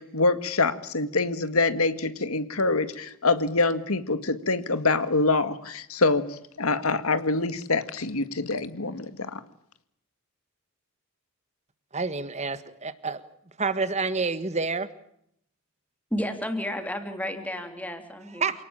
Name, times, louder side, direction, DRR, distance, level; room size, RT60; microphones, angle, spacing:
voice 1, 0.0-9.4, left 3 dB, 80° left, 11 dB, 1.9 m, -25 dB
voice 2, 11.9-13.2 13.6-14.9 18.4-18.6, right 4 dB, 30° right, 13 dB, 1.5 m, -28 dB
voice 3, 16.1-18.4, left 1 dB, 5° left, 6 dB, 3.1 m, -32 dB
28.5 x 18.5 x 8.9 m, 0.73 s
head